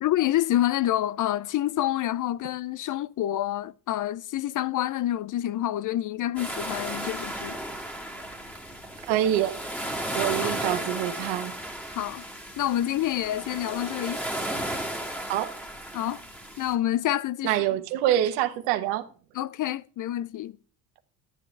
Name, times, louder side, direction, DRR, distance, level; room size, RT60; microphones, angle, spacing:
voice 1, 0.0-7.6 10.4-10.6 11.9-12.2 12.6-14.2 15.9-16.2 16.6-17.5 19.4-20.6, left 13 dB, 40° left, 0.4 m, -27 dB
sound 1, 6.4-16.7, right 1 dB, 5° left, 2.2 m, -34 dB
voice 2, 9.1-9.6 10.1-11.5 15.3-15.5 17.4-19.0, right 12 dB, 80° right, 1.1 m, -25 dB
11.5 x 9.6 x 3.3 m
hypercardioid pair, 65°, 48 cm